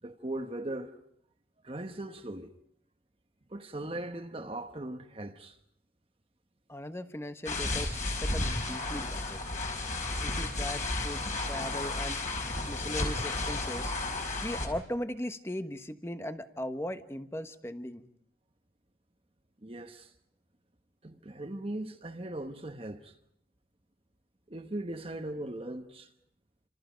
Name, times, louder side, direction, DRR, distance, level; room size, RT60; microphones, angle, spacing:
voice 1, 0.0-0.9 1.6-2.5 3.5-5.6 10.2-10.4 11.3-11.4 19.6-20.1 21.0-23.2 24.5-26.1, right 1 dB, 30° right, 1.2 m, -39 dB
voice 2, 6.7-9.4 10.2-12.2 12.7-13.9 14.4-18.0, left 1 dB, 15° left, 1.2 m, -38 dB
sound 1, 7.4-14.7, left 2 dB, 45° left, 4.9 m, -33 dB
29.0 x 27.0 x 5.2 m
head